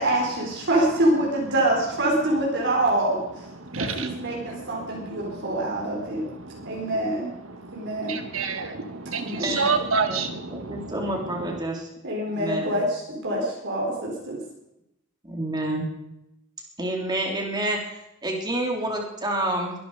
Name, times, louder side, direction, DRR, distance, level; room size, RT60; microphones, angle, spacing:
voice 1, 0.0-3.4 3.7-6.3 6.6-7.3 7.7-8.2 9.2-9.8 12.0-14.4, right 1 dB, 60° right, -2 dB, 4.3 m, -25 dB
voice 2, 3.5-7.1 7.4-11.6, right 4 dB, 85° right, 7 dB, 1.9 m, -31 dB
voice 3, 10.5-11.9 12.3-12.8 15.2-15.9 16.8-19.7, right 1 dB, 20° right, 1 dB, 3.7 m, -28 dB
23.0 x 11.5 x 5.0 m, 0.87 s
head